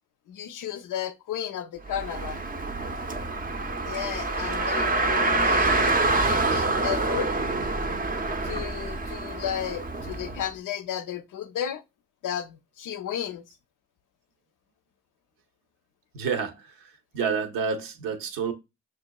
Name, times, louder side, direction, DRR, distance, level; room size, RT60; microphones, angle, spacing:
voice 1, 0.3-2.4 3.8-6.0 6.2-7.3 8.4-11.8 12.2-13.5, left 10 dB, 65° left, 0.5 m, -33 dB
Car, 1.8-10.4, right 2 dB, 25° right, 0.5 m, -26 dB
voice 2, 16.1-18.5, right 6 dB, 80° right, 0.7 m, -29 dB
6.0 x 2.4 x 2.2 m
supercardioid pair, 45°, 33 cm